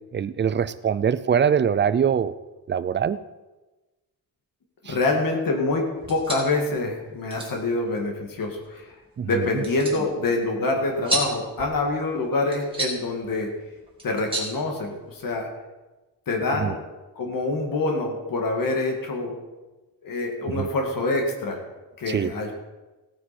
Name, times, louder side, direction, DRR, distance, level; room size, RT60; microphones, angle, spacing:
voice 1, 0.1-2.3 2.7-3.2 4.9-5.0 9.2-9.3 16.6-16.7 20.5-20.7 22.1-22.3, right 7 dB, 30° right, 15 dB, 0.4 m, -23 dB
voice 2, 4.9-8.9 9.2-13.5 14.0-15.5 16.3-16.8 17.2-19.3 20.0-21.6 22.0-22.5, left 2 dB, 65° left, 2 dB, 2.0 m, -26 dB
sound 1, 5.9-15.4, right 1 dB, 15° right, 2.3 m, -35 dB
16.0 x 9.4 x 4.3 m, 1.2 s
wide cardioid pair, 165°, 36 cm